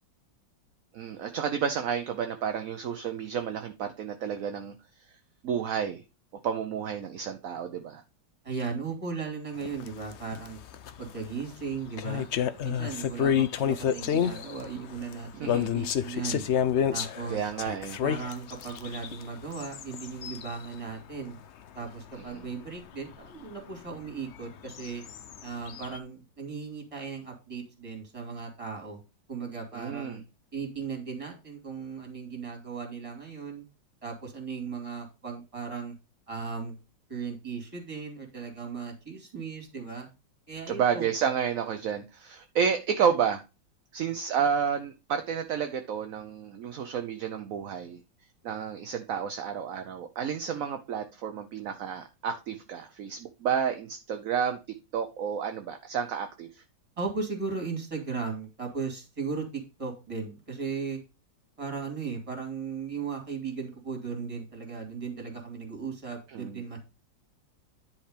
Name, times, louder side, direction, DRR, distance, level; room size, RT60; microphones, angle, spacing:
voice 1, 0.9-4.7 5.4-6.0 6.4-8.0 15.3-15.7 17.3-18.0 22.3-22.4 29.7-30.2 40.7-43.4 43.9-48.0 48.4-54.6 54.9-56.6 66.3-66.6, right 7 dB, 60° right, 0.9 m, -30 dB
voice 2, 8.4-10.6 11.0-12.3 12.6-16.4 16.9-17.5 18.0-21.4 21.7-25.0 25.4-29.0 29.3-30.2 30.5-33.6 34.0-35.9 36.3-36.7 37.1-40.1 40.5-41.1 57.0-61.0 61.6-66.8, right 5 dB, 15° right, 2.7 m, -37 dB
sound 1, 9.6-20.8 21.1-21.3 21.7-21.9 22.3-22.4 22.7-22.8 23.1-23.2 24.3-26.0, left 9 dB, 90° left, 0.6 m, -30 dB
10.5 x 4.5 x 5.0 m
omnidirectional pair, 2.1 m